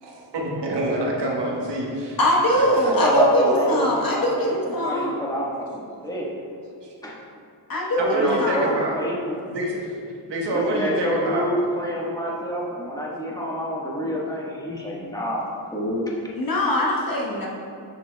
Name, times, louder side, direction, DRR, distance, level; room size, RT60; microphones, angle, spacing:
voice 1, 0.0-2.2 2.6-2.9 6.8-6.9 8.0-9.0 9.5-9.9 10.3-11.5, right 1 dB, 65° right, -1 dB, 1.2 m, -26 dB
voice 2, 2.2-5.2 7.7-8.8 16.3-17.5, equal, 45° left, -3 dB, 1.2 m, -22 dB
voice 3, 2.8-6.3 7.0-7.2 8.0-9.5 10.5-16.1, equal, 10° left, -4 dB, 1.4 m, -27 dB
7.0 x 6.1 x 2.3 m, 2.5 s
cardioid pair, 65°, 46 cm